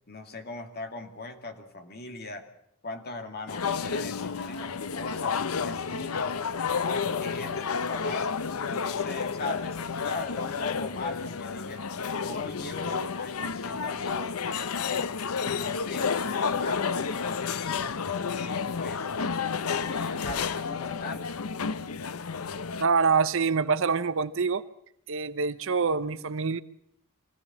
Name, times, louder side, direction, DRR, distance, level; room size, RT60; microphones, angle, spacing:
voice 1, 0.1-2.5 2.8-6.3 6.8-8.3 8.6-11.9 12.2-15.1 15.4-18.0 18.4-19.1 19.4-21.4, left 2 dB, 50° left, 2.2 m, -39 dB
sound 1, 3.5-22.8, left 6 dB, 90° left, 0.7 m, -31 dB
voice 2, 22.8-24.6 25.1-26.6, right 5 dB, 65° right, 0.8 m, -25 dB
24.0 x 16.5 x 7.2 m
head